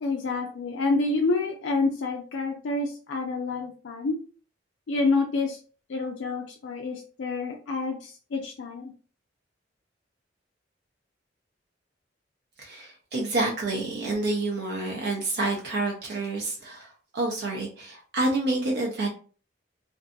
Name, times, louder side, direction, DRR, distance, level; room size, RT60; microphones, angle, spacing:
voice 1, 0.0-4.2 4.9-5.6 5.9-8.9, left 3 dB, 90° left, 1 dB, 0.4 m, -28 dB
voice 2, 12.6-19.1, right 2 dB, 60° right, -1 dB, 0.6 m, -28 dB
2.6 x 2.5 x 2.2 m, 0.39 s
head